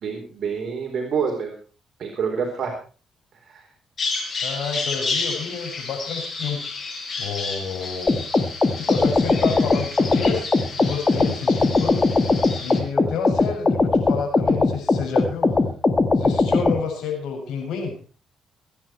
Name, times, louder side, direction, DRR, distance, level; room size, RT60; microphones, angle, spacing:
voice 1, 0.0-1.5 2.0-2.7 3.4-3.7, right 6 dB, 55° right, 1 dB, 4.2 m, -27 dB
Bird vocalization bird call bird song, 4.0-12.8, left 4 dB, 45° left, 6.6 m, -31 dB
voice 2, 4.4-6.6 7.2-8.2 8.8-12.0 12.6-15.6 16.2-18.0, left 5 dB, 80° left, 3 dB, 7.0 m, -30 dB
sound 1, 8.1-16.8, left 3 dB, 25° left, 1.8 m, -20 dB
23.0 x 10.0 x 4.5 m, 0.37 s
cardioid pair, 90°, 0 cm